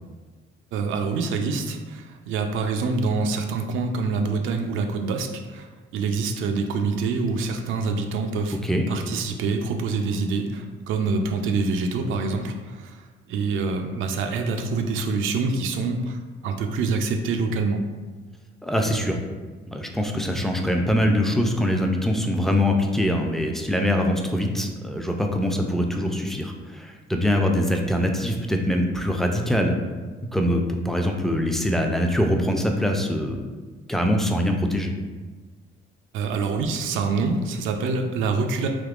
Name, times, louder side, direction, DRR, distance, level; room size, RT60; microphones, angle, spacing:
voice 1, 0.7-8.6 8.9-17.9 36.1-38.7, right 4 dB, 80° right, 5 dB, 0.4 m, -26 dB
voice 2, 18.6-19.2 19.7-29.7 30.3-33.4 33.9-34.9, equal, ahead, 2 dB, 0.4 m, -23 dB
3.5 x 2.9 x 2.4 m, 1.4 s
cardioid pair, 90°, 20 cm